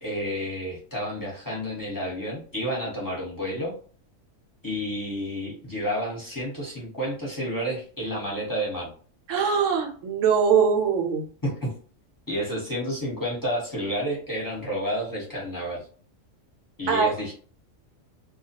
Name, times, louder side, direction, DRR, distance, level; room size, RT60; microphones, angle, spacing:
voice 1, 0.0-3.7 4.6-8.9 11.4-11.7 12.3-15.9 16.8-17.3, equal, 20° left, -6 dB, 0.8 m, -30 dB
voice 2, 9.3-11.2 16.9-17.1, right 6 dB, 75° right, 3 dB, 0.9 m, -22 dB
2.3 x 2.2 x 2.7 m, 0.44 s
omnidirectional pair, 1.4 m